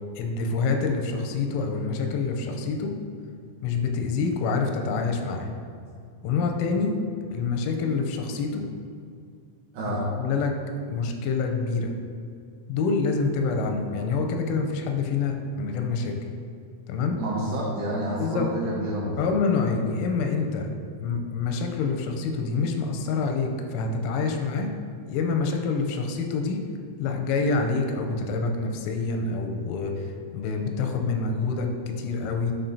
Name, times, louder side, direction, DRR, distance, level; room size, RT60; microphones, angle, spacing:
voice 1, 0.2-2.9 3.6-5.5 6.2-7.0 7.3-8.7 9.8-10.6 10.9-11.9 12.7-16.2 16.9-17.2 18.2-18.5 19.2-20.7 21.0-24.7 25.1-26.6 27.0-32.5, left 4 dB, 90° left, 4 dB, 3.2 m, -26 dB
voice 2, 17.2-19.3, right 1 dB, 75° right, -7 dB, 2.6 m, -29 dB
11.0 x 3.7 x 2.7 m, 2.3 s
omnidirectional pair, 5.7 m